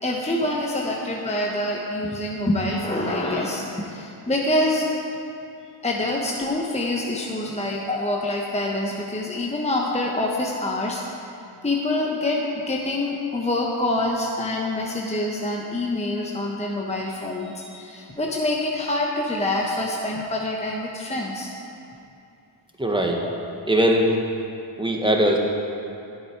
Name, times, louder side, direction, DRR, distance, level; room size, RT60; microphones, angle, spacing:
voice 1, 0.0-5.0 5.8-11.0 11.6-21.5, left 1 dB, 15° left, -1 dB, 0.9 m, -26 dB
voice 2, 22.8-23.2 23.7-24.1 24.8-25.4, right 1 dB, 10° right, 0 dB, 1.4 m, -20 dB
10.0 x 8.0 x 4.6 m, 2.6 s
cardioid pair, 50°, 50 cm